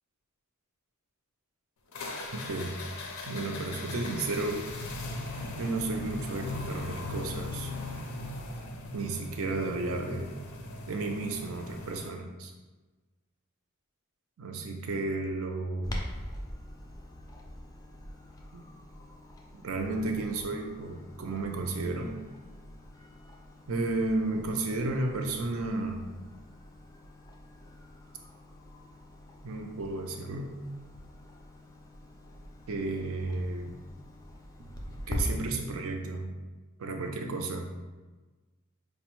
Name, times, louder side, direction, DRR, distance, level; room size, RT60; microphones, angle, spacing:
sound 1, 1.9-12.1, left 2 dB, 75° left, 0.5 m, -39 dB
voice 1, 3.3-4.9 5.6-7.7 8.9-10.3 10.9-12.5 14.4-15.9 18.5-18.6 19.5-22.1 23.7-26.0 29.4-30.6 32.7-33.8 34.9-36.3 36.8-37.7, right 2 dB, 70° right, 3 dB, 0.5 m, -33 dB
Clock, 15.8-35.2, left 1 dB, 15° left, 0.3 m, -45 dB
5.0 x 2.1 x 3.0 m, 1.3 s
head